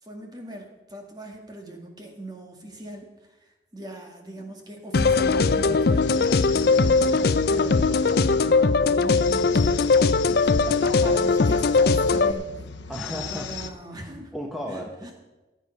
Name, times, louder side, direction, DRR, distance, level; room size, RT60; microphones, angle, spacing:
voice 1, 0.0-7.8 8.1-12.7 13.3-14.3 14.7-15.1, right 2 dB, 20° right, 2 dB, 1.9 m, -40 dB
sound 1, 4.9-12.3, left 4 dB, 60° left, 0.5 m, -20 dB
sound 2, 5.3-13.7, left 5 dB, 90° left, 0.8 m, -37 dB
voice 2, 12.9-13.5 13.9-15.1, equal, ahead, 0 dB, 0.9 m, -35 dB
15.5 x 8.4 x 5.4 m, 1.1 s
head